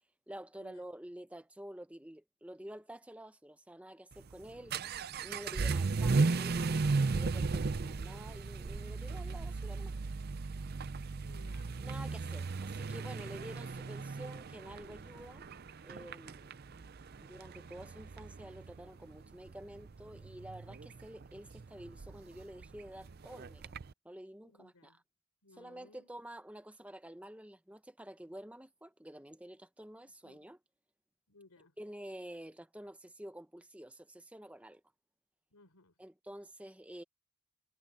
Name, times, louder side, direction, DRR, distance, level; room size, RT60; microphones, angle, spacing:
voice 1, 0.3-4.8 5.2-9.9 11.8-15.4 15.8-16.5 17.2-23.6 24.0-25.0 25.6-30.6 31.8-34.8 36.0-37.0, right 1 dB, 5° right, 0.7 m, -49 dB
Vehicle / Accelerating revving vroom, 4.1-23.9, right 4 dB, 45° right, 0.5 m, -36 dB
voice 2, 4.3-4.8 11.2-11.7 13.4-13.6 24.4-25.0 25.4-26.1 30.0-30.5 31.3-31.7 35.5-35.9, left 2 dB, 90° left, 4.0 m, -62 dB
head